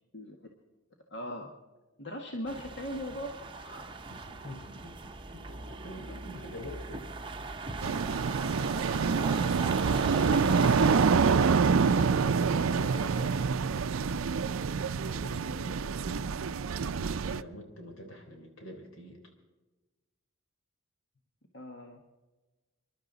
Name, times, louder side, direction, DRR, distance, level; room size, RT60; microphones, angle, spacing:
voice 1, 1.1-1.5 2.0-3.4 3.6-3.9 11.5-12.1 21.5-22.0, equal, 60° left, 1 dB, 1.6 m, -39 dB
sound 1, 2.5-13.4, right 3 dB, 25° right, 0.8 m, -40 dB
voice 2, 4.1-5.0 5.3-7.1 7.4-9.7 10.0-10.8 12.1-13.5 14.1-14.3 14.9-16.3 16.9-19.2, left 1 dB, 80° left, 3 dB, 3.7 m, -47 dB
sound 2, 7.8-17.4, right 5 dB, 85° right, 0.5 m, -26 dB
27.0 x 12.0 x 4.0 m, 1.2 s
head